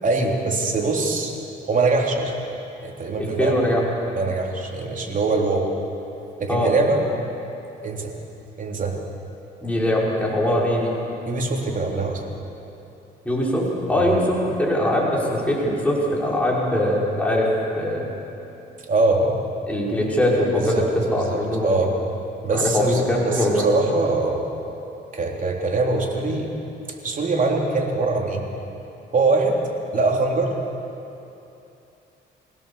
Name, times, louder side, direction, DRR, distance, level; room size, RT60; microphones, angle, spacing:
voice 1, 0.0-1.3 1.7-2.3 2.8-3.6 4.1-5.7 6.4-7.0 7.8-8.1 8.6-9.0 11.3-12.2 14.0-14.2 18.9-19.4 19.8-19.9 20.7-20.9 21.2-21.9 22.4-24.4 25.1-26.5 27.0-28.4 29.1-29.6 29.9-30.5, right 3 dB, 40° right, 0 dB, 3.5 m, -23 dB
voice 2, 3.2-3.8 6.5-6.7 9.6-11.0 13.2-17.5 17.8-18.1 19.7-21.9 22.5-23.6, left 1 dB, 5° left, -5 dB, 5.4 m, -22 dB
24.5 x 17.0 x 7.2 m, 2.9 s
cardioid pair, 90°, 20 cm